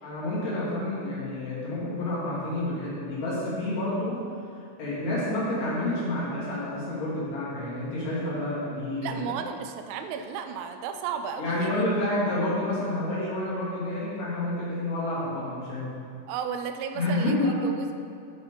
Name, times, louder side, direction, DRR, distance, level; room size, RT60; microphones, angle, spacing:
voice 1, 0.0-4.2 4.8-9.3 11.4-16.0 16.9-17.5, left 1 dB, 45° left, -8 dB, 3.1 m, -29 dB
voice 2, 9.0-11.9 16.3-17.9, right 7 dB, 85° right, 7 dB, 2.3 m, -34 dB
8.3 x 7.9 x 3.8 m, 2.4 s
omnidirectional pair, 5.1 m